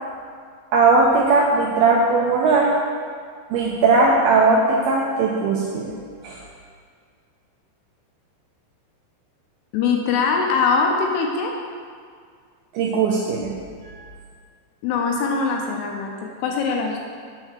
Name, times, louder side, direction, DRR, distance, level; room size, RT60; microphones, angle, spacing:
voice 1, 0.7-2.7 3.5-5.9 6.2-6.4 12.7-13.5, right 3 dB, 80° right, -2 dB, 2.2 m, -18 dB
voice 2, 9.7-11.5 14.8-17.0, left 5 dB, 75° left, 1 dB, 2.6 m, -22 dB
8.8 x 4.6 x 7.4 m, 2.1 s
omnidirectional pair, 5.2 m